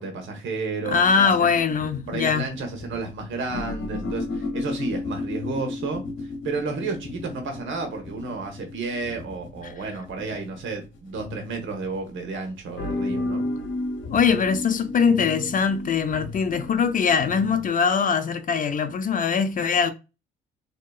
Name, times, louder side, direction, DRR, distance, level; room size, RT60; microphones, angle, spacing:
voice 1, 0.0-1.5 2.1-13.5, right 3 dB, 75° right, 1.1 m, -32 dB
sound 1, 0.9-12.1 12.7-17.7, left 2 dB, 75° left, 0.8 m, -33 dB
voice 2, 0.9-2.5 14.1-19.9, left 6 dB, 45° left, 0.5 m, -22 dB
3.5 x 2.8 x 2.3 m
cardioid pair, 90°, 20 cm